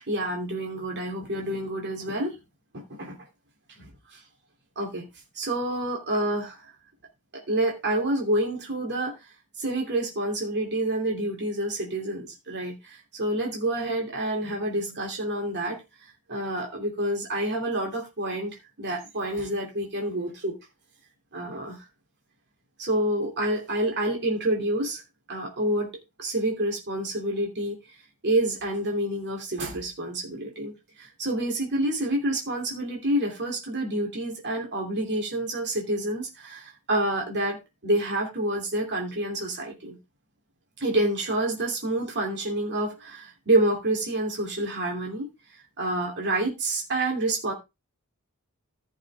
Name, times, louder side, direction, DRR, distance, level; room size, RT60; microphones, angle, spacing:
voice 1, 0.1-2.4 2.7-3.1 4.1-4.2 4.8-5.0 5.3-6.7 7.3-9.1 9.6-15.8 16.3-18.5 18.8-20.6 21.3-21.9 22.8-25.0 25.3-25.9 26.2-27.8 28.2-30.7 31.0-37.6 37.8-40.0 40.8-45.3 45.8-47.5, right 1 dB, 50° right, 1 dB, 2.8 m, -28 dB
14.5 x 6.5 x 3.4 m, 0.24 s
head